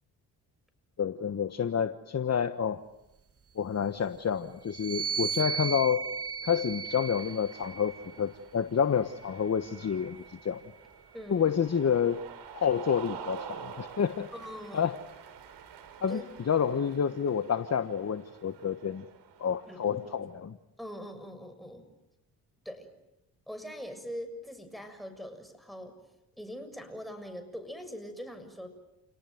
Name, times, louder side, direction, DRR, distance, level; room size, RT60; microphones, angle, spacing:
voice 1, 1.0-2.8 3.6-6.1 6.4-10.6 11.3-12.2 12.5-14.3 14.7-15.0 16.0-19.0 19.4-20.5, left 7 dB, 35° left, 11 dB, 1.3 m, -29 dB
sound 1, 4.7-8.3 9.1-10.7, right 6 dB, 35° right, 1.4 m, -37 dB
Cheering, 6.7-20.2, right 8 dB, 75° right, 3.7 m, -48 dB
voice 2, 11.1-11.5 14.3-14.8 16.1-16.2 19.7-20.0 20.8-21.9 22.7-22.9 23.5-26.0 26.4-28.7, equal, ahead, 7 dB, 6.9 m, -42 dB
29.5 x 18.5 x 9.3 m, 0.93 s
hypercardioid pair, 55°, 42 cm